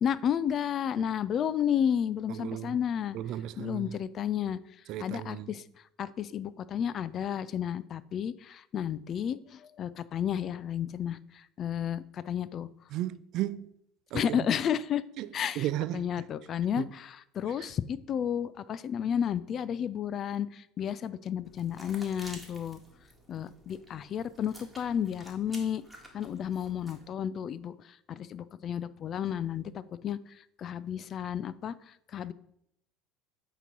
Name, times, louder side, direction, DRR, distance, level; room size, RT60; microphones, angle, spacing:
voice 1, 0.0-3.2 3.6-4.6 5.0-5.6 6.0-12.7 14.1-15.0 15.3-15.7 15.9-22.8 23.3-25.8 26.1-27.7 28.1-30.2 30.6-32.3, left 9 dB, 45° left, 0.3 m, -32 dB
voice 2, 2.3-2.8 3.1-3.9 4.9-5.5 12.9-13.7 14.1-14.5 15.2-15.3 15.6-16.1 16.8-16.9, right 13 dB, 60° right, 0.3 m, -34 dB
sound 1, 21.4-27.1, right 1 dB, ahead, 1.6 m, -52 dB
8.4 x 3.0 x 5.4 m
supercardioid pair, 95°, 0 cm